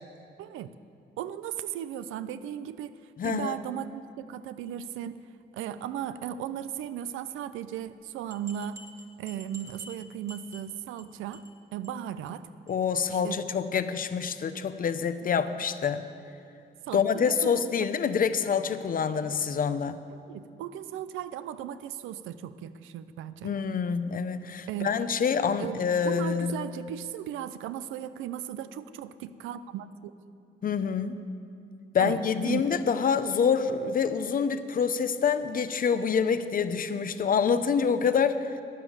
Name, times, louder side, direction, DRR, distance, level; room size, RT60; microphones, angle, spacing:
voice 1, 0.4-0.7 1.2-3.0 3.2-5.2 5.5-8.8 9.2-11.4 11.7-12.5 13.1-13.4 15.4-15.5 16.8-17.9 20.1-23.5 24.7-24.9 25.6-25.8 26.0-30.1 32.0-32.6, right 10 dB, 85° right, 13 dB, 0.5 m, -36 dB
voice 2, 3.2-3.6 12.7-16.1 16.9-20.0 23.4-26.5 30.6-31.2 31.9-38.5, left 6 dB, 45° left, 11 dB, 0.7 m, -26 dB
sound 1, 7.9-8.0 8.3-11.0 11.3-11.6 11.8-11.9 12.3-12.4 12.7-12.8, right 2 dB, 15° right, 1.3 m, -48 dB
12.0 x 9.7 x 7.3 m, 2.6 s
cardioid pair, 90°, 20 cm